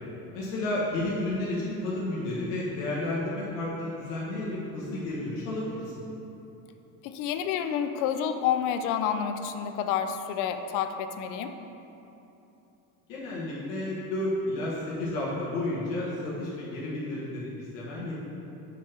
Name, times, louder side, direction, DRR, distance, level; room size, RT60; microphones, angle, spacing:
voice 1, 0.3-6.0 13.1-14.7 15.0-18.1, left 1 dB, 80° left, -6 dB, 1.5 m, -31 dB
voice 2, 7.0-11.5, left 8 dB, 55° left, 8 dB, 0.5 m, -29 dB
7.5 x 3.5 x 5.9 m, 3.0 s
cardioid pair, 150°, 37 cm